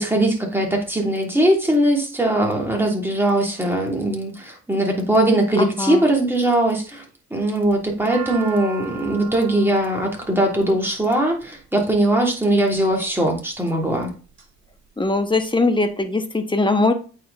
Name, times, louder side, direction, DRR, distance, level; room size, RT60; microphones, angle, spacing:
voice 1, 0.0-7.0 7.3-14.1, right 1 dB, 5° right, 0 dB, 3.1 m, -20 dB
voice 2, 5.6-6.0 15.0-16.9, left 2 dB, 15° left, 7 dB, 1.3 m, -20 dB
sound 1, 7.7-11.9 12.7-13.2 13.8-14.4 14.8-14.9 15.0-15.9, right 4 dB, 40° right, 4.3 m, -38 dB
8.5 x 4.8 x 4.1 m, 0.36 s
cardioid pair, 90°, 30 cm